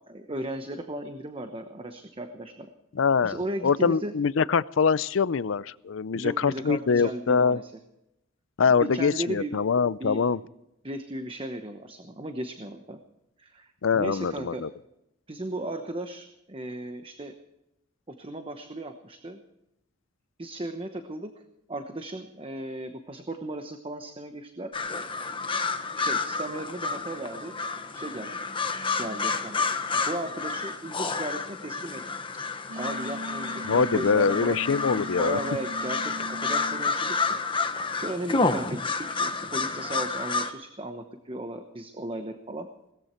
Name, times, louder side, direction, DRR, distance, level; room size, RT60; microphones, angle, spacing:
voice 1, 0.1-2.7 3.2-4.1 6.1-7.7 8.7-9.5 10.0-10.2 10.8-13.0 13.4-14.6 15.3-17.3 18.1-19.4 20.4-21.3 21.7-24.7 26.0-27.6 27.9-28.4 28.9-29.6 29.9-32.0 32.7-34.6 35.2-37.4 38.0-42.7, right 1 dB, 25° right, 7 dB, 1.0 m, -36 dB
voice 2, 2.9-7.6 8.6-10.4 13.8-14.7 33.6-35.4, left 5 dB, 70° left, 19 dB, 0.5 m, -24 dB
sound 1, 24.7-40.5, left 4 dB, 25° left, 1.1 m, -30 dB
Wind instrument woodwind instrument, 32.7-36.8, equal, 85° right, 1.4 m, -39 dB
19.0 x 14.5 x 4.5 m, 0.86 s
head